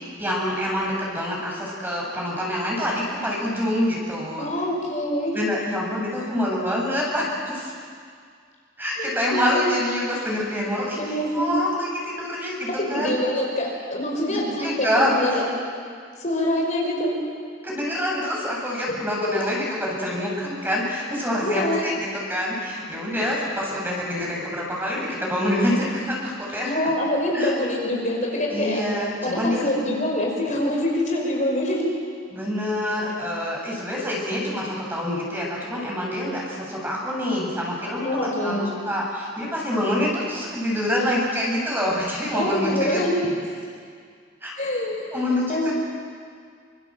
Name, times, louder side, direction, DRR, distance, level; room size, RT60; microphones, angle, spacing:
voice 1, 0.2-4.5 5.3-7.7 8.8-13.1 14.3-15.4 17.6-26.9 27.3-27.5 28.5-29.8 32.3-43.0 44.4-44.5 45.1-45.7, left 1 dB, 10° right, -3 dB, 7.5 m, -26 dB
voice 2, 4.4-5.4 9.0-9.7 11.0-11.5 12.8-15.5 16.2-17.2 18.8-19.0 21.4-21.8 26.6-28.8 29.2-32.0 38.0-38.8 42.3-43.3 44.6-45.7, left 1 dB, 40° left, -1 dB, 5.5 m, -25 dB
28.5 x 26.0 x 7.6 m, 2.1 s
head